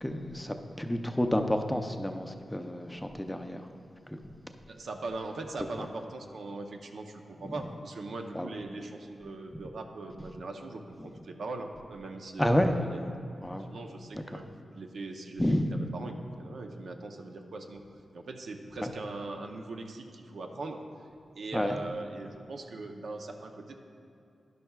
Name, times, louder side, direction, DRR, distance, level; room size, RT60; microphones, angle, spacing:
voice 1, 0.0-3.7 8.3-8.5 12.4-12.7 13.4-13.7 14.1-14.4 15.4-15.8 18.8-18.9 21.5-21.8, equal, 10° left, 5 dB, 0.5 m, -29 dB
voice 2, 4.7-13.0 13.7-14.5 14.7-15.4 15.7-17.8 18.1-20.8 21.3-23.7, right 3 dB, 80° right, 4 dB, 0.7 m, -40 dB
12.0 x 10.5 x 2.3 m, 2.7 s
wide cardioid pair, 90°, 0 cm